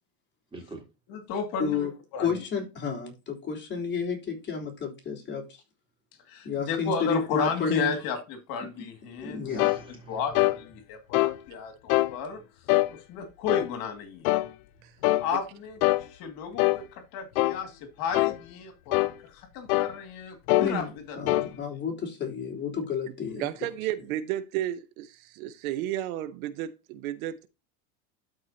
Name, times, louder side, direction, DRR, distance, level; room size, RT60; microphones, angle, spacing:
voice 1, 0.5-0.8 8.7-10.4 12.4-12.5, right 3 dB, 10° right, 3.3 m, -47 dB
voice 2, 1.1-2.4 6.3-9.7 10.1-12.4 12.9-14.3 15.2-21.4, left 6 dB, 55° left, 2.2 m, -34 dB
voice 3, 1.6-1.9 2.2-5.4 6.4-7.9 9.2-9.7 20.6-20.9 21.2-23.5, left 5 dB, 25° left, 3.3 m, -31 dB
sound 1, 9.6-9.8 10.3-10.6 11.1-11.4 11.9-12.1 12.7-12.9 13.5-13.7 14.2-14.5 15.0-15.3 15.8-16.0 16.6-16.8 17.3-17.6 18.1-18.4 18.9-19.1 19.7-19.9 20.5-20.7 21.3-21.5, left 19 dB, 80° left, 0.7 m, -23 dB
voice 4, 23.4-27.5, right 13 dB, 80° right, 1.0 m, -33 dB
12.5 x 4.9 x 2.8 m
supercardioid pair, 135°, 41 cm